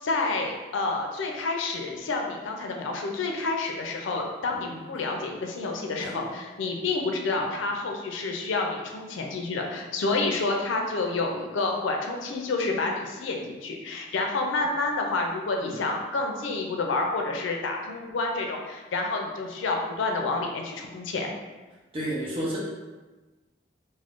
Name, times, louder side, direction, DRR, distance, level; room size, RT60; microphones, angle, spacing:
voice 1, 0.0-21.3, left 3 dB, 90° left, 1 dB, 0.4 m, -29 dB
voice 2, 21.9-22.6, right 1 dB, 30° right, -6 dB, 0.5 m, -32 dB
2.4 x 2.1 x 3.5 m, 1.2 s
head